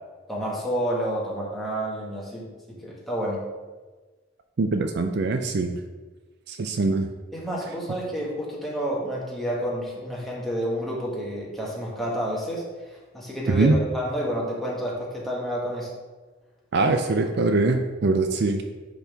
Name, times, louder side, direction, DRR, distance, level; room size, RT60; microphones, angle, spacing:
voice 1, 0.3-2.5 2.8-3.4 7.3-16.0, equal, ahead, -6 dB, 1.7 m, -29 dB
voice 2, 4.6-5.8 6.5-7.1 13.5-13.8 16.7-18.6, right 3 dB, 55° right, 6 dB, 0.4 m, -22 dB
10.0 x 4.1 x 3.5 m, 1.3 s
head